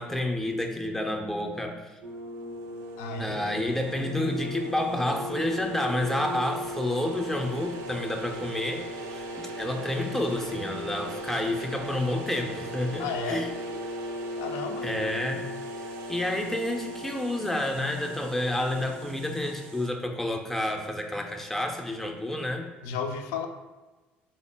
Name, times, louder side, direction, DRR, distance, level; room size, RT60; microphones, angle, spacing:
voice 1, 0.0-1.8 3.2-13.5 14.8-15.4 16.1-22.7, left 1 dB, 5° left, 3 dB, 0.5 m, -29 dB
sound 1, 2.0-19.9, equal, 60° right, 0.4 m, -37 dB
voice 2, 3.0-3.4 13.0-13.5 14.3-14.9 22.8-23.5, left 5 dB, 65° left, 5 dB, 0.3 m, -33 dB
3.6 x 2.0 x 3.4 m, 1.2 s
figure-of-eight pair, 55°, 5 cm